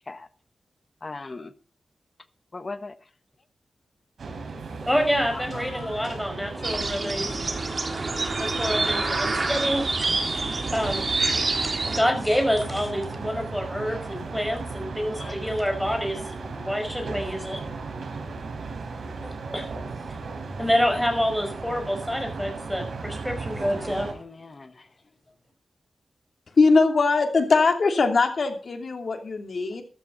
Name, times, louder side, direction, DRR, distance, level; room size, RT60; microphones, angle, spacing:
voice 1, 1.0-1.5 2.5-2.9 5.3-6.0 6.7-6.9 15.2-15.5 15.8-16.0 23.7-24.9, left 3 dB, 40° left, 12 dB, 1.3 m, -39 dB
sound 1, 4.2-24.1, right 4 dB, 75° right, 4.4 m, -36 dB
voice 2, 4.9-7.4 8.4-11.0 11.6-17.6 19.2-19.7 20.6-24.1, equal, 5° left, 4 dB, 5.5 m, -27 dB
sound 2, 6.6-12.0, right 3 dB, 45° right, 3.2 m, -27 dB
voice 3, 26.6-29.8, left 4 dB, 60° left, 5 dB, 2.9 m, -21 dB
14.0 x 13.0 x 4.0 m, 0.39 s
wide cardioid pair, 85°, 0 cm